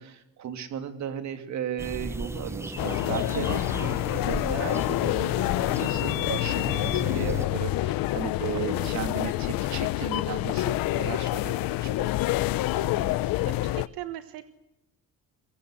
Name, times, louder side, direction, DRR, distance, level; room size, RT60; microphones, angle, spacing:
voice 1, 0.0-12.1, right 9 dB, 55° right, 7 dB, 2.9 m, -36 dB
sound 1, 1.8-7.5, right 1 dB, 10° right, 1.2 m, -36 dB
sound 2, 2.8-13.9, left 16 dB, 75° left, 0.8 m, -27 dB
voice 2, 8.5-8.9 12.8-14.4, right 13 dB, 80° right, 10 dB, 1.5 m, -40 dB
23.0 x 23.0 x 7.8 m, 0.92 s
cardioid pair, 145°, 35 cm